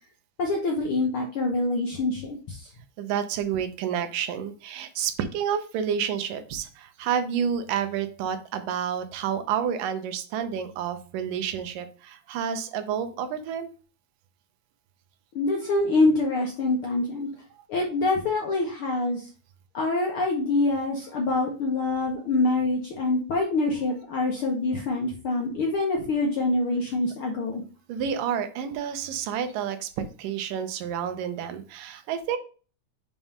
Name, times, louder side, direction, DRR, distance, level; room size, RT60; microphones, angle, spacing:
voice 1, 0.4-2.7 15.3-17.3 17.7-19.2 19.7-27.6, left 2 dB, 70° left, 0 dB, 1.3 m, -25 dB
voice 2, 3.0-13.7 27.9-32.4, right 8 dB, 90° right, 9 dB, 2.5 m, -29 dB
6.0 x 3.6 x 5.3 m, 0.37 s
omnidirectional pair, 3.7 m